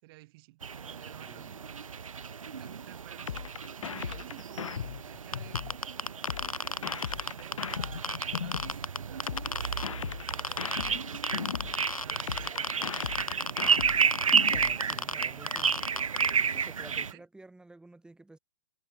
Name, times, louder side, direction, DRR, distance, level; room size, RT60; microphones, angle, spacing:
voice 1, 0.0-1.7 2.4-5.6 6.0-6.5 6.9-9.7 10.2-11.6 12.0-13.4 13.8-14.2 17.1-17.2, right 22 dB, 45° right, 6.6 m, -53 dB
sound 1, 0.6-17.1, right 6 dB, 70° right, 1.4 m, -32 dB
voice 2, 1.2-1.6 14.5-15.9 16.5-18.4, right 2 dB, 5° right, 4.2 m, -51 dB
sound 2, 3.3-5.8 6.3-8.8 9.3-11.8 12.3-14.8, left 7 dB, 65° left, 1.6 m, -37 dB
Geiger Counter Hotspot (Uneven), 5.3-9.9 10.3-10.9 11.2-16.3, left 2 dB, 85° left, 2.1 m, -32 dB
figure-of-eight pair, 110°, 18 cm